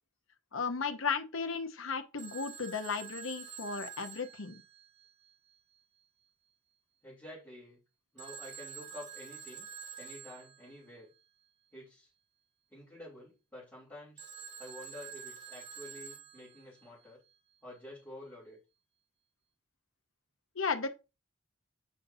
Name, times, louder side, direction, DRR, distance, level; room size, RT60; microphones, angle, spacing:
voice 1, 0.5-4.6 20.5-20.9, left 5 dB, 85° left, 1.0 m, -35 dB
Telephone, 2.2-5.3 8.2-10.7 14.2-16.8, right 7 dB, 40° right, 2.7 m, -47 dB
voice 2, 7.0-7.8 8.1-9.7 10.0-11.1 11.7-12.1 12.7-14.3 14.6-17.2 17.6-18.6, left 1 dB, 10° left, 3.4 m, -49 dB
7.4 x 5.5 x 2.7 m
head